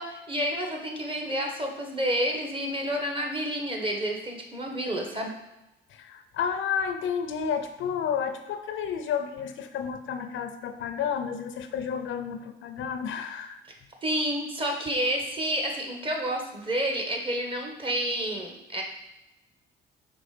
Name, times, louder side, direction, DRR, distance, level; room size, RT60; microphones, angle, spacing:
voice 1, 0.0-5.3 14.0-18.8, equal, 25° right, 2 dB, 1.3 m, -29 dB
voice 2, 5.9-13.6, left 7 dB, 80° left, 8 dB, 0.6 m, -31 dB
5.2 x 3.7 x 4.9 m, 0.95 s
cardioid pair, 90°, 20 cm